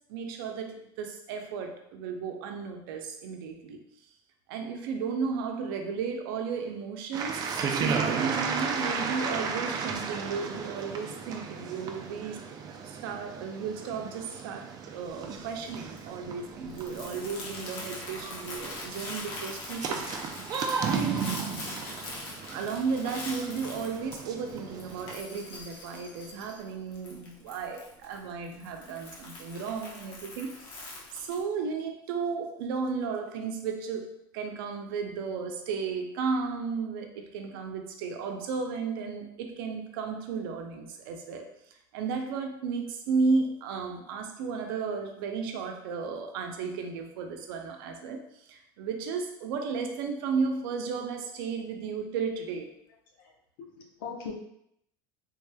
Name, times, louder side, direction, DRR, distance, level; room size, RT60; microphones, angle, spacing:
voice 1, 0.1-3.8 4.5-7.5 7.8-12.4 12.8-20.4 20.8-21.3 22.5-34.1 34.3-52.7, right 5 dB, 80° right, 4 dB, 0.6 m, -34 dB
sound 1, 7.1-25.1, right 5 dB, 35° right, 0.4 m, -35 dB
Crumpling crinkling, 15.0-31.4, left 2 dB, 60° left, 1.0 m, -43 dB
voice 2, 53.2-54.3, left 6 dB, 85° left, 0 dB, 0.8 m, -41 dB
3.5 x 3.3 x 2.2 m, 0.75 s
supercardioid pair, 125°, 12 cm